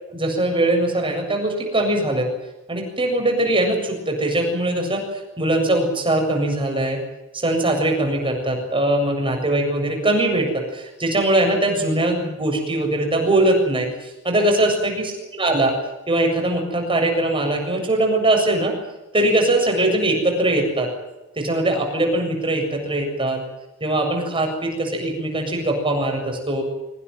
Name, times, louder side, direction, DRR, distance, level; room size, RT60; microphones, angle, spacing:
voice 1, 0.1-2.3 2.7-7.0 7.3-15.7 16.1-18.7 19.1-20.9 21.4-23.4 23.8-26.6, right 1 dB, 25° right, 3 dB, 7.4 m, -21 dB
24.5 x 18.5 x 9.4 m, 1.0 s
head